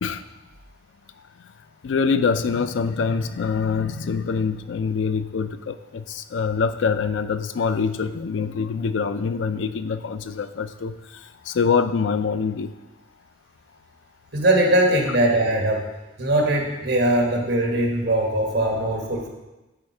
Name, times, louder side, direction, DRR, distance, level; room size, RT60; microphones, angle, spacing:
voice 1, 1.8-12.7, left 5 dB, 85° left, 12 dB, 0.4 m, -25 dB
voice 2, 14.3-15.9 16.2-19.3, right 1 dB, 60° right, 1 dB, 1.4 m, -21 dB
10.0 x 4.0 x 4.3 m, 1.0 s
head